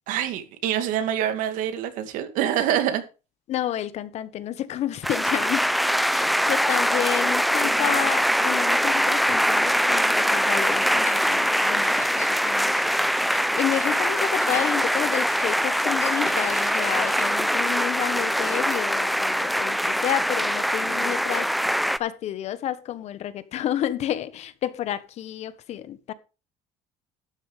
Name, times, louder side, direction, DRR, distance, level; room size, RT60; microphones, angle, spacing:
voice 1, 0.1-3.0, right 10 dB, 75° right, 2.3 m, -25 dB
voice 2, 3.5-5.7 6.1-12.7 13.6-26.1, left 11 dB, 55° left, 1.2 m, -30 dB
sound 1, 5.0-22.0, equal, ahead, 0.5 m, -23 dB
sound 2, 10.7-17.4, left 4 dB, 20° left, 3.3 m, -43 dB
12.0 x 10.0 x 3.4 m
cardioid pair, 135°, 14 cm